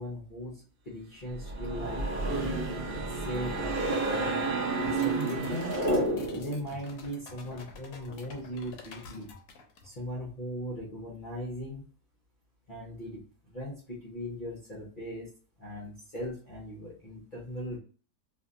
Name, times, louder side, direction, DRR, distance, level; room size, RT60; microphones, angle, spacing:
voice 1, 0.0-2.6 2.9-4.5 4.8-5.8 6.3-9.3 9.8-11.9 12.7-15.3 15.6-17.8, equal, 45° left, -6 dB, 0.6 m, -39 dB
sound 1, 1.3-6.6, right 2 dB, 75° right, 0.4 m, -30 dB
sound 2, 4.8-10.0, left 4 dB, 65° left, 1.0 m, -48 dB
2.7 x 2.6 x 2.4 m, 0.40 s
omnidirectional pair, 1.8 m